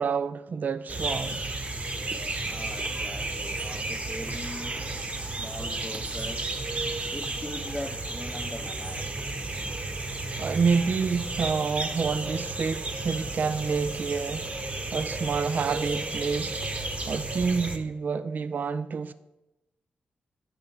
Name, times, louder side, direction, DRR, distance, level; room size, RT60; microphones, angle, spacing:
voice 1, 0.0-1.5 10.4-14.5 14.9-16.6 17.1-19.1, right 5 dB, 55° right, 0.3 m, -28 dB
sound 1, 0.9-17.8, right 2 dB, 40° right, 0.9 m, -33 dB
voice 2, 2.5-6.6 7.1-9.1, left 1 dB, 10° left, 0.7 m, -41 dB
9.3 x 3.4 x 5.4 m
supercardioid pair, 50°, 3 cm